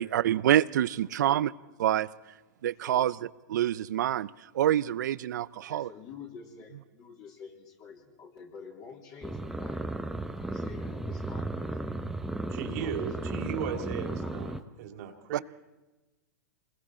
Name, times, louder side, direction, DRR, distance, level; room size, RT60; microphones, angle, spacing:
voice 1, 0.0-1.5 1.8-2.1 2.6-3.1 3.5-5.9 15.3-15.4, right 12 dB, 75° right, 0.6 m, -26 dB
voice 2, 5.5-9.8 10.4-11.8 12.6-14.7, left 6 dB, 35° left, 3.3 m, -48 dB
sound 1, 9.2-14.6, right 2 dB, 5° right, 0.9 m, -35 dB
voice 3, 12.5-15.4, right 8 dB, 55° right, 2.7 m, -36 dB
28.0 x 21.0 x 4.4 m
hypercardioid pair, 125°, 10 cm